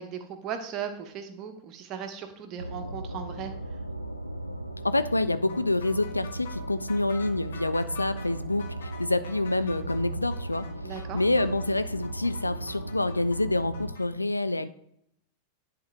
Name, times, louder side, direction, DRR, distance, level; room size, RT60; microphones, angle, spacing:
voice 1, 0.0-3.5 10.8-11.2, right 8 dB, 35° right, 6 dB, 0.9 m, -37 dB
sound 1, 2.6-13.9, right 1 dB, 90° right, 0.5 m, -37 dB
voice 2, 4.8-14.7, left 2 dB, 85° left, 12 dB, 0.3 m, -27 dB
sound 2, 5.5-14.0, left 6 dB, 60° left, 1.4 m, -47 dB
10.5 x 3.6 x 3.3 m, 0.72 s
figure-of-eight pair, 90°, 0 cm